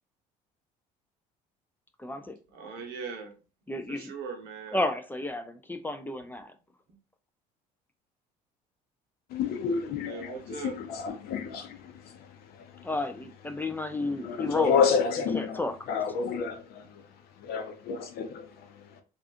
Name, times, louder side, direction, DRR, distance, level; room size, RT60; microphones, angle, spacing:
voice 1, 2.0-2.4 3.7-4.1 4.7-6.5 12.8-14.8 15.3-15.7, left 2 dB, 10° left, 0.4 m, -32 dB
voice 2, 2.5-3.3 3.9-4.8 10.0-10.8, right 5 dB, 70° right, 0.9 m, -39 dB
voice 3, 9.3-12.9 14.2-15.6 15.9-17.0 17.4-19.0, left 6 dB, 60° left, 0.6 m, -30 dB
2.5 x 2.4 x 2.5 m
supercardioid pair, 75°, 18 cm